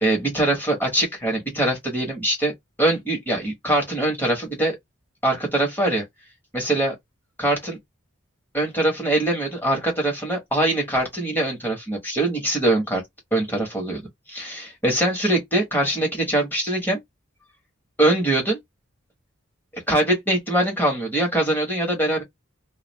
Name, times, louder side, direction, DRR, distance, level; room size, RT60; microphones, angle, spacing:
voice 1, 0.0-2.5 2.8-4.8 5.2-6.0 6.5-6.9 7.4-7.8 8.5-13.0 13.3-14.0 14.3-17.0 18.0-18.6 19.7-22.2, right 1 dB, 10° left, 1.1 m, -22 dB
2.4 x 2.3 x 3.1 m
head